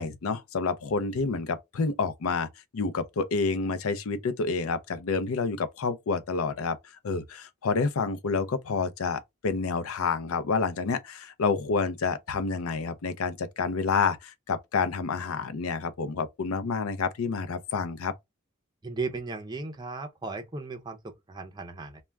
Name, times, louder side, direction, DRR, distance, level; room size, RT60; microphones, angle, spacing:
voice 1, 0.0-2.5 2.7-6.8 7.0-18.1, left 4 dB, 85° left, 0.5 m, -29 dB
voice 2, 18.8-22.0, right 3 dB, 20° right, 0.4 m, -36 dB
2.3 x 2.1 x 3.2 m
head